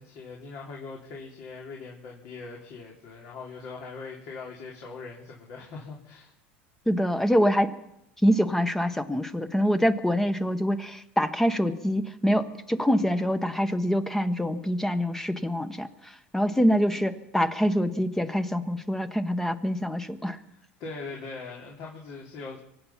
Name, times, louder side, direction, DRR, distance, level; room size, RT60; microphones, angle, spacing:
voice 1, 0.0-6.3 20.5-22.6, left 4 dB, 60° left, -2 dB, 3.3 m, -41 dB
voice 2, 6.9-7.7 8.2-20.4, equal, 5° left, 10 dB, 1.2 m, -25 dB
24.5 x 8.9 x 5.8 m, 0.83 s
hypercardioid pair, 95°, 6 cm